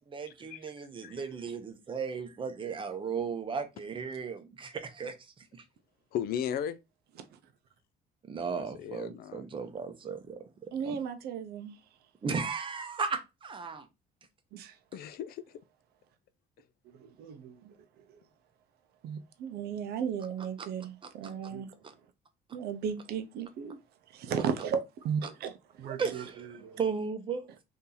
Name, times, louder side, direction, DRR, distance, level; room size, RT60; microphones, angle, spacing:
voice 1, 0.1-5.1 8.3-10.5 10.8-11.0 12.2-13.9 21.0-21.1 26.0-27.6, right 5 dB, 30° right, 0.7 m, -35 dB
voice 2, 6.1-6.8 8.4-9.5 14.9-15.4, left 9 dB, 65° left, 0.4 m, -36 dB
voice 3, 10.7-11.8 14.5-14.7 17.0-17.7 19.0-21.7 22.5-23.8 24.1-25.5 25.8-26.2 26.5-26.8, right 7 dB, 70° right, 0.6 m, -35 dB
2.8 x 2.7 x 3.8 m
cardioid pair, 110°, 17 cm